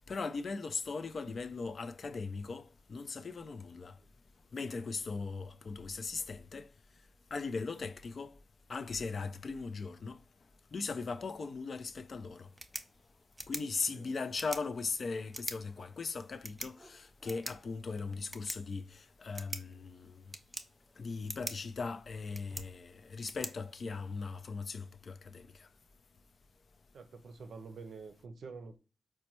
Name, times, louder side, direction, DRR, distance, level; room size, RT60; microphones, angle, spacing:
voice 1, 0.1-3.9 4.5-6.7 7.3-8.3 8.7-10.2 10.7-12.5 13.5-20.2 21.0-25.7, left 4 dB, 60° left, 0.3 m, -39 dB
sound 1, 12.4-24.4, right 1 dB, 15° right, 0.5 m, -47 dB
voice 2, 26.9-28.8, right 4 dB, 75° right, 0.5 m, -48 dB
4.1 x 2.2 x 2.9 m
cardioid pair, 60°, 0 cm